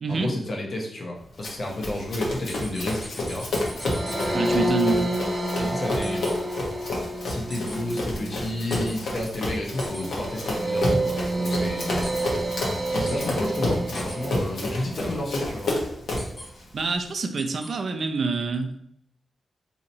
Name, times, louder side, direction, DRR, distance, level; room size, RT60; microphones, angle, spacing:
voice 1, 0.1-3.5 4.0-4.6 5.6-6.4 7.2-12.1 12.9-15.8, left 1 dB, 45° left, 0 dB, 0.8 m, -31 dB
Run, 1.4-16.4, left 1 dB, 75° left, 1.0 m, -30 dB
sound 1, 2.5-4.3 6.0-6.3 7.5-7.7 8.7-8.9 9.8-10.0 12.0-12.2 13.1-13.3 13.9-14.2 16.2-16.5 17.4-17.7, equal, 5° left, 1.0 m, -40 dB
sound 2, 3.7-15.1, right 1 dB, 25° right, 0.7 m, -29 dB
voice 2, 4.3-5.1 16.7-18.7, right 4 dB, 55° right, 6 dB, 0.4 m, -26 dB
4.2 x 2.8 x 2.7 m, 0.70 s
wide cardioid pair, 135°, 0 cm